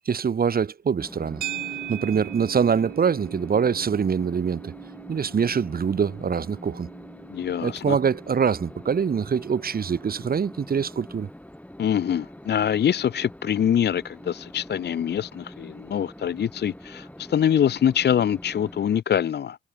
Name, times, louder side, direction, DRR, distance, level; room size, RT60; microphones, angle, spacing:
voice 1, 0.1-1.4 1.9-4.7 5.1-6.9 7.6-11.3, right 6 dB, 30° right, 0.6 m, -24 dB
sound 1, 1.0-19.0, left 1 dB, 5° left, 2.5 m, -44 dB
sound 2, 1.4-9.8, right 12 dB, 75° right, 1.7 m, -40 dB
voice 2, 7.3-8.0 11.8-19.6, left 9 dB, 35° left, 0.4 m, -24 dB
supercardioid pair, 50°, 30 cm